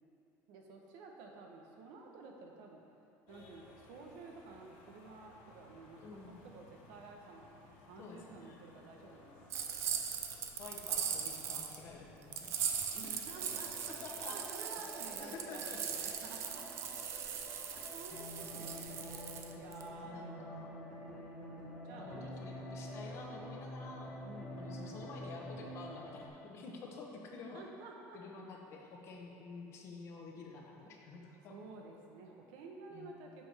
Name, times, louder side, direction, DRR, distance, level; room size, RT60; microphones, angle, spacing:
voice 1, 0.5-2.8 3.3-9.8 12.9-16.9 17.4-22.6 24.2-25.3 27.5-28.4 31.5-33.5, right 3 dB, 75° right, 1 dB, 0.9 m, -52 dB
sound 1, 3.3-14.3, left 3 dB, 80° left, 1.2 m, -60 dB
voice 2, 6.0-6.4 8.0-8.9 10.6-12.5 13.0-13.1 13.9-14.4 15.2-15.9 17.8-17.9 19.8-20.7 21.9-24.2 24.6-27.7 28.1-31.6 32.9-33.1, left 4 dB, 40° left, 0 dB, 0.8 m, -50 dB
sound 2, 9.5-11.8 12.3-19.8, right 8 dB, 40° right, 0.5 m, -39 dB
sound 3, 13.3-26.3, left 1 dB, 15° left, 1.1 m, -48 dB
7.6 x 5.6 x 3.3 m, 2.9 s
cardioid pair, 165°, 7 cm